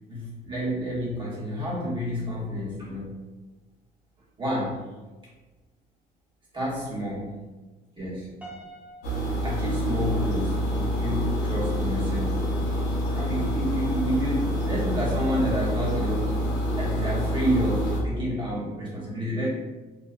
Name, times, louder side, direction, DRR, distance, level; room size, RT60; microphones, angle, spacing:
voice 1, 0.1-3.1 4.4-4.8 6.5-7.4 8.0-8.4 9.4-12.5 13.1-16.4 16.7-19.5, equal, 30° right, -8 dB, 1.2 m, -29 dB
Piano, 8.4-10.6, right 2 dB, 10° right, 0.7 m, -47 dB
sound 1, 9.0-18.0, equal, 85° left, 0.7 m, -27 dB
2.7 x 2.2 x 2.4 m, 1.2 s
cardioid pair, 110°, 17 cm